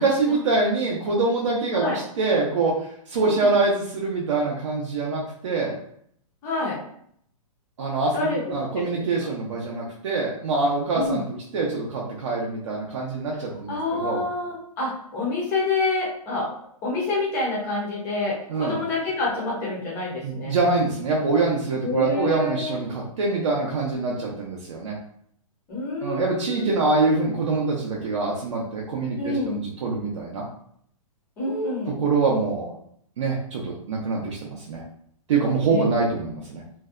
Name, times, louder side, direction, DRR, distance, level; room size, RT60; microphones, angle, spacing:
voice 1, 0.0-1.8 2.2-2.8 3.1-5.8 7.8-11.3 11.5-14.2 18.5-18.8 20.2-25.0 26.0-30.4 32.0-32.8 33.2-34.8 35.3-36.6, right 3 dB, 55° right, -3 dB, 0.5 m, -24 dB
voice 2, 3.2-3.6 6.4-6.8 8.1-8.4 8.7-9.0 10.9-11.2 13.7-16.5 16.8-20.6 21.8-22.8 25.7-27.0 29.2-29.5 31.4-32.0 35.7-35.8, left 3 dB, 10° left, -5 dB, 0.5 m, -27 dB
2.6 x 2.0 x 2.3 m, 0.66 s
hypercardioid pair, 165°, 19 cm